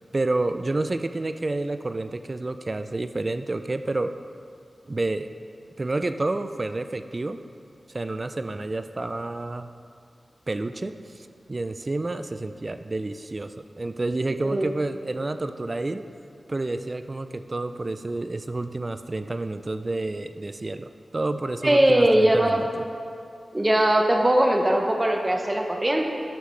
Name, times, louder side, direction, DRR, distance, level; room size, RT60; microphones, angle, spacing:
voice 1, 0.1-4.2 4.9-5.3 5.8-7.4 7.9-9.7 10.5-16.1 16.5-22.8, right 2 dB, 45° right, 10 dB, 0.3 m, -29 dB
voice 2, 14.4-14.7 21.6-22.6 23.5-26.0, right 1 dB, 25° right, 2 dB, 0.8 m, -20 dB
9.8 x 7.1 x 3.2 m, 2.3 s
cardioid pair, 50°, 0 cm